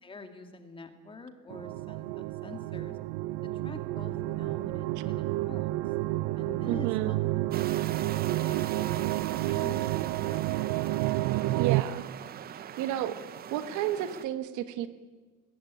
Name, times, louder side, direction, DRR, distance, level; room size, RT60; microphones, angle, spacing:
voice 1, 0.0-3.0 3.4-5.7 6.4-7.2 7.7-9.2 9.4-10.6, left 3 dB, 15° left, 7 dB, 2.1 m, -47 dB
sound 1, 1.5-11.8, right 18 dB, 75° right, 0.8 m, -30 dB
voice 2, 6.7-7.2 11.5-12.0 12.8-13.1 13.5-14.9, right 12 dB, 60° right, 11 dB, 1.7 m, -31 dB
sound 2, 7.5-14.2, right 9 dB, 30° right, 0.8 m, -41 dB
24.5 x 20.5 x 9.5 m, 1.4 s
cardioid pair, 170°, 33 cm